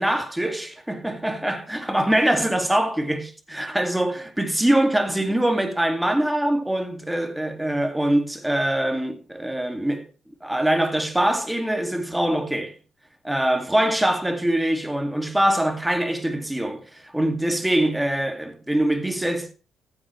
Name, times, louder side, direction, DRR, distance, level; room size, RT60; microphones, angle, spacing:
voice 1, 0.0-10.1 10.4-12.8 13.2-19.5, right 1 dB, 5° right, 2.2 m, -23 dB
15.0 x 8.0 x 3.2 m
cardioid pair, 90°, 0 cm